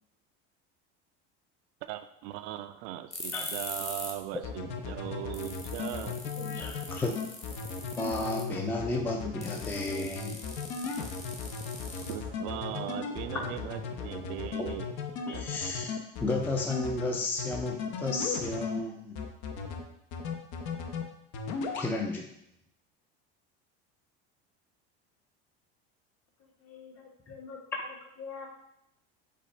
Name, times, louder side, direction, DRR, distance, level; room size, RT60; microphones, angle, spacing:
voice 1, 1.8-6.2 9.2-9.3 12.1-14.9 15.3-15.7, right 13 dB, 75° right, 10 dB, 0.5 m, -39 dB
sound 1, 3.1-4.2 4.5-4.6 5.1-5.2 5.3-8.6 9.4-12.5, left 2 dB, 20° left, 1.0 m, -42 dB
sound 2, 4.4-18.8 19.2-19.8 20.1-21.0 21.3-21.9, left 5 dB, 70° left, 0.8 m, -36 dB
voice 2, 6.4-7.3 8.0-10.4 11.9-12.0 13.3-13.5 14.6-14.7 15.3-19.2 21.8-22.4, left 2 dB, 5° left, 1 dB, 0.4 m, -33 dB
voice 3, 26.4-28.5, left 5 dB, 50° left, -1 dB, 1.4 m, -46 dB
5.0 x 2.4 x 4.2 m, 0.79 s
supercardioid pair, 105°, 30 cm